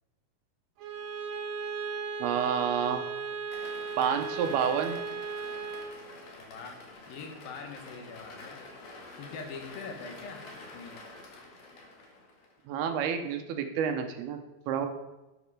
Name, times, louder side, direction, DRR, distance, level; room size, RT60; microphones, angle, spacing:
Bowed string instrument, 0.8-6.0, right 5 dB, 70° right, 2.8 m, -36 dB
voice 1, 2.2-3.0 4.0-5.0 12.7-14.4 14.7-14.9, right 7 dB, 90° right, 6 dB, 2.9 m, -29 dB
sound 1, 3.5-12.6, left 2 dB, 50° left, 2.6 m, -48 dB
voice 2, 6.4-6.8 7.1-8.6 9.2-10.4 10.7-11.1, left 4 dB, 70° left, 4 dB, 3.0 m, -43 dB
11.5 x 7.8 x 4.9 m, 1.0 s
omnidirectional pair, 4.5 m